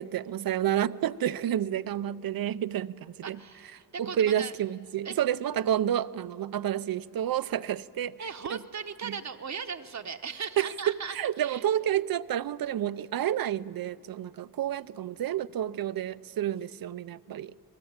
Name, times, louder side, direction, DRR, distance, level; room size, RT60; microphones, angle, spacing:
voice 1, 0.0-3.4 4.0-8.1 8.5-8.6 9.0-9.1 10.6-10.7 11.1-17.6, right 10 dB, 65° right, 0.6 m, -30 dB
voice 2, 3.2-4.5 5.0-5.2 8.2-11.6, right 6 dB, 45° right, 0.9 m, -38 dB
27.5 x 20.5 x 8.8 m
wide cardioid pair, 135°, 38 cm